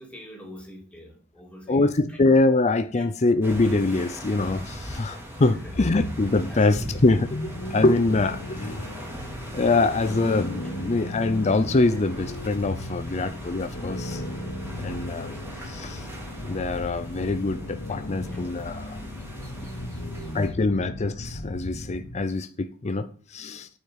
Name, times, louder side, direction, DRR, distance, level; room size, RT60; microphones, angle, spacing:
voice 1, 0.0-2.2 3.0-3.1 5.1-5.2 5.5-5.7 6.5-6.7 19.4-20.5, equal, 5° left, 3.1 m, -46 dB
voice 2, 1.7-8.9 9.5-14.2 14.7-15.4 15.6-16.1 16.4-19.0 20.3-23.7, left 2 dB, 30° left, 0.5 m, -24 dB
sound 1, 3.4-20.5, equal, 10° right, 3.1 m, -41 dB
sound 2, 5.6-22.3, left 1 dB, 70° left, 1.5 m, -36 dB
8.7 x 5.7 x 8.0 m
head